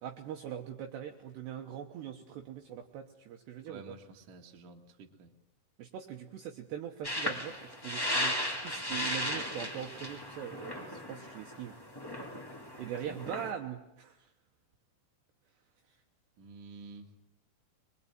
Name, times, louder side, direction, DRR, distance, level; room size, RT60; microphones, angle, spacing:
voice 1, 0.0-3.9 5.8-11.8 12.8-14.3 15.9-16.0, right 9 dB, 70° right, 3 dB, 3.0 m, -42 dB
voice 2, 3.7-5.3 12.9-13.2 16.4-17.1, right 3 dB, 50° right, 3 dB, 2.9 m, -50 dB
sound 1, 7.0-13.5, left 1 dB, 15° left, 0.7 m, -36 dB
24.0 x 22.5 x 9.0 m, 0.88 s
omnidirectional pair, 5.7 m